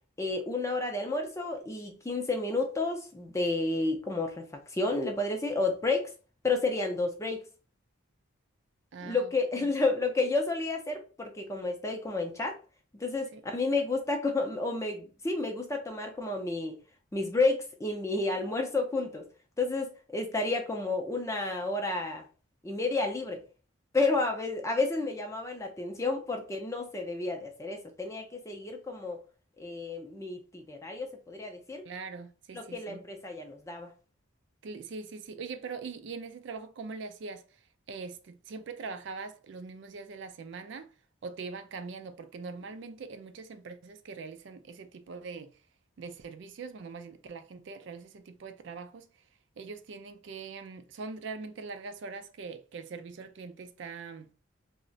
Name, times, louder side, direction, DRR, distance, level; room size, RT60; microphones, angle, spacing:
voice 1, 0.2-6.1 6.4-7.4 9.0-12.6 12.9-16.8 17.1-19.3 19.6-22.2 22.6-23.4 23.9-29.2 29.6-31.8 32.5-33.9, left 3 dB, 15° left, 0.4 m, -31 dB
voice 2, 8.9-9.7 13.3-13.4 18.4-18.5 31.8-33.0 34.6-37.5 37.9-40.9 41.2-45.5 46.0-49.1 49.6-54.3, right 4 dB, 60° right, 0.3 m, -42 dB
2.4 x 2.1 x 3.8 m
head